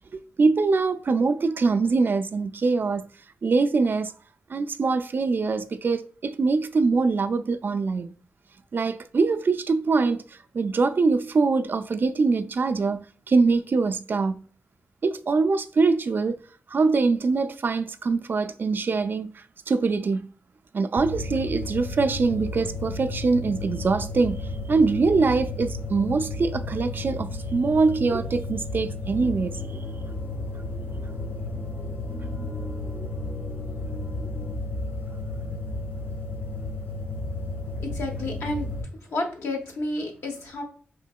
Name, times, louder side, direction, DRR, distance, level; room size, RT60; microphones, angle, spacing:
voice 1, 0.1-3.1 3.4-4.1 4.5-8.1 8.7-14.4 15.0-16.4 16.7-20.3 20.7-29.6, right 4 dB, 50° right, 0.3 m, -23 dB
sound 1, 21.0-38.8, left 2 dB, 55° left, 1.2 m, -33 dB
sound 2, 29.2-34.5, equal, ahead, 0.6 m, -44 dB
voice 2, 37.8-38.7 39.0-40.6, left 2 dB, 75° left, 0.9 m, -31 dB
4.3 x 2.8 x 2.2 m
cardioid pair, 50°, 4 cm